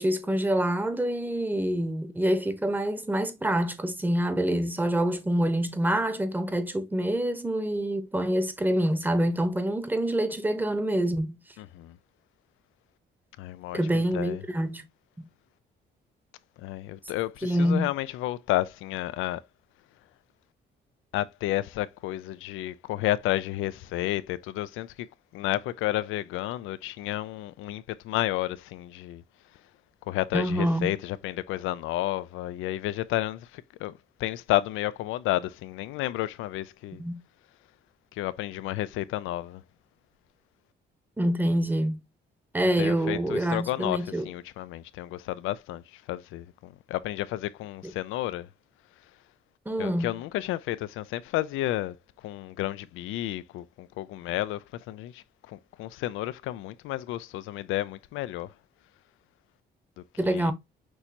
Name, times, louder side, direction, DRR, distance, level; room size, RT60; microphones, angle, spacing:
voice 1, 0.0-11.4 13.7-14.8 17.4-17.9 30.3-30.9 37.0-37.2 41.2-42.0 42.5-44.3 47.8-47.9 49.7-50.1 60.2-60.5, right 1 dB, 10° right, 0.9 m, -26 dB
voice 2, 11.6-12.0 13.4-14.4 16.6-19.4 21.1-24.9 25.3-29.2 30.1-37.0 38.2-39.6 42.8-48.5 49.8-51.9 52.2-58.5 60.2-60.5, left 15 dB, 90° left, 0.4 m, -31 dB
6.2 x 2.7 x 2.8 m
cardioid pair, 90°, 20 cm